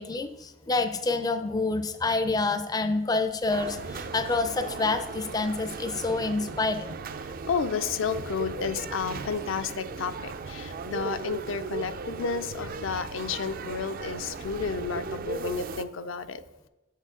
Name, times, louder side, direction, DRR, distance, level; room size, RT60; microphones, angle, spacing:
voice 1, 0.0-7.0, left 3 dB, 20° left, 8 dB, 0.4 m, -28 dB
sound 1, 3.5-15.8, right 4 dB, 45° right, 0.4 m, -37 dB
sound 2, 6.5-6.7 7.7-8.2 9.2-9.7, right 2 dB, 85° right, 0.9 m, -48 dB
voice 2, 7.2-16.4, left 5 dB, 80° left, 10 dB, 0.5 m, -31 dB
8.1 x 6.6 x 3.7 m, 1.0 s
head